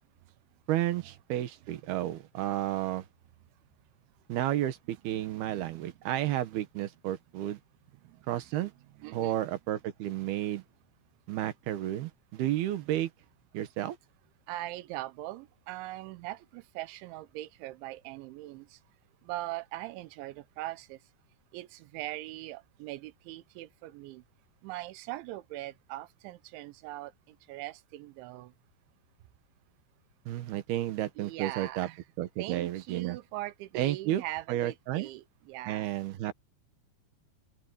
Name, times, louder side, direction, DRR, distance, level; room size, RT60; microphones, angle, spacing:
voice 1, 0.7-3.1 4.3-7.6 8.3-8.7 9.1-10.6 11.3-13.1 13.5-14.0 30.3-31.9 32.2-33.2 33.7-34.2 34.5-35.1 35.7-36.3, right 13 dB, 70° right, 2.9 m, -32 dB
voice 2, 5.1-5.9 8.0-8.2 9.0-9.3 14.5-18.8 19.2-21.0 21.5-24.2 24.6-28.5 31.2-32.0 32.4-35.9, right 17 dB, 85° right, 3.1 m, -41 dB
open air
omnidirectional pair, 5.4 m